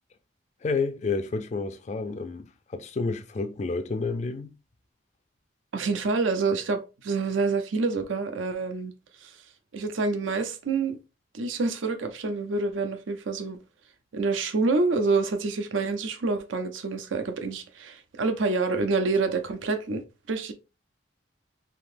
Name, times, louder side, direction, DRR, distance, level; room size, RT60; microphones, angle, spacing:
voice 1, 0.6-4.5, left 4 dB, 35° left, 0.3 m, -30 dB
voice 2, 5.7-8.9 9.2-9.3 9.7-11.0 11.3-13.6 14.1-20.0 20.3-20.5, right 3 dB, 80° right, 0.5 m, -27 dB
3.5 x 2.8 x 2.5 m
head